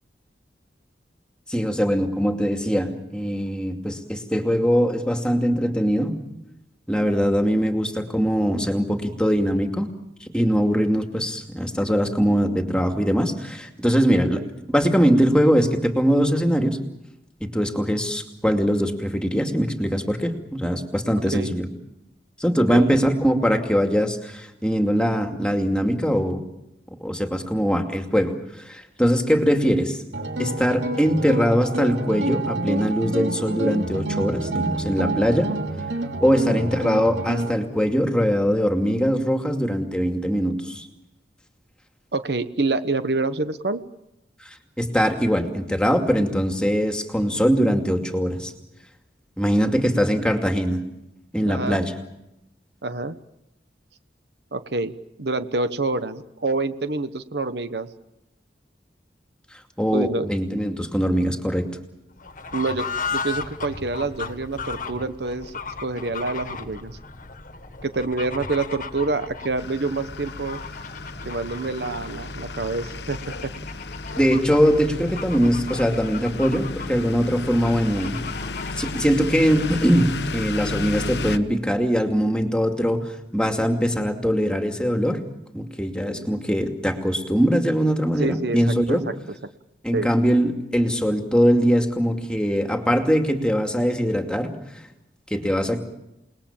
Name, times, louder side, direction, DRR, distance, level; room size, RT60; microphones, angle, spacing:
voice 1, 1.5-6.2 6.9-9.9 10.2-14.4 14.7-16.8 17.4-21.7 22.4-26.4 27.0-30.0 30.4-35.5 36.2-40.9 44.4-44.5 44.8-48.5 49.4-50.8 51.3-51.9 59.8-61.7 74.2-78.2 78.8-85.2 85.5-89.0 89.8-94.5 95.3-95.8, equal, 5° left, 5 dB, 2.5 m, -22 dB
sound 1, 30.1-37.5, right 2 dB, 85° right, 3.0 m, -28 dB
voice 2, 36.4-36.7 42.1-43.8 51.5-51.8 52.8-53.2 54.5-57.9 59.9-60.3 62.5-65.5 65.8-67.0 67.8-70.6 71.2-73.5 86.0-86.3 88.2-88.6 88.9-89.1 89.9-90.1, right 3 dB, 65° right, 11 dB, 1.2 m, -27 dB
Fowl / Bird, 62.2-80.2, left 4 dB, 50° left, 1.7 m, -36 dB
sound 2, 69.6-81.4, left 3 dB, 70° left, 1.1 m, -33 dB
29.0 x 20.0 x 7.3 m, 0.89 s
head